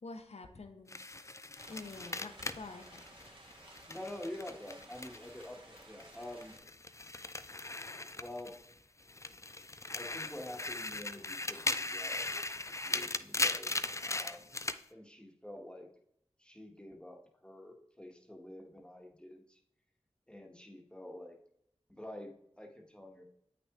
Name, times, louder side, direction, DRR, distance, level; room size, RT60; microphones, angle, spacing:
voice 1, 0.0-1.1 1.7-3.3, left 3 dB, 75° left, 6 dB, 1.0 m, -48 dB
sound 1, 0.9-5.5 5.8-8.7 9.1-14.8, left 2 dB, 25° left, 0.4 m, -38 dB
sound 2, 1.6-6.6, right 1 dB, 50° right, 1.7 m, -56 dB
voice 2, 3.9-6.5 8.1-8.6 9.9-13.8 14.1-14.5 14.9-15.9 16.4-19.6 20.3-21.4 21.9-23.2, left 1 dB, 10° left, 2 dB, 1.3 m, -47 dB
8.0 x 6.0 x 3.6 m, 0.73 s
cardioid pair, 40°, 11 cm